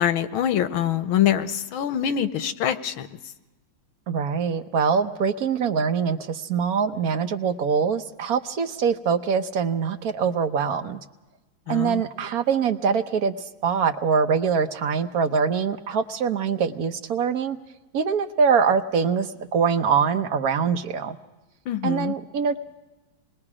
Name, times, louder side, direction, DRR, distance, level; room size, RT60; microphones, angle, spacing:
voice 1, 0.0-3.1 11.7-12.0 21.7-22.1, left 10 dB, 85° left, 11 dB, 1.7 m, -24 dB
voice 2, 4.1-11.0 11.7-13.3 13.6-17.6 17.9-21.2 21.8-22.6, right 6 dB, 60° right, 9 dB, 1.1 m, -23 dB
28.0 x 20.5 x 4.9 m, 1.1 s
omnidirectional pair, 2.2 m